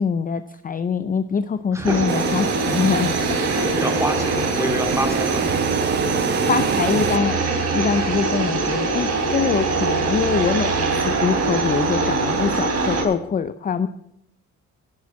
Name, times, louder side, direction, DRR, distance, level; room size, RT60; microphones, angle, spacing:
voice 1, 0.0-3.1 6.5-7.4 7.7-13.9, left 6 dB, 30° left, 12 dB, 0.5 m, -23 dB
voice 2, 1.7-2.2 3.5-5.7, right 1 dB, 10° right, 4 dB, 2.5 m, -28 dB
sound 1, 1.8-13.0, right 3 dB, 55° right, 3.0 m, -23 dB
sound 2, 2.1-7.2, right 8 dB, 35° right, 0.5 m, -27 dB
11.0 x 6.0 x 8.3 m, 0.78 s
cardioid pair, 90°, 30 cm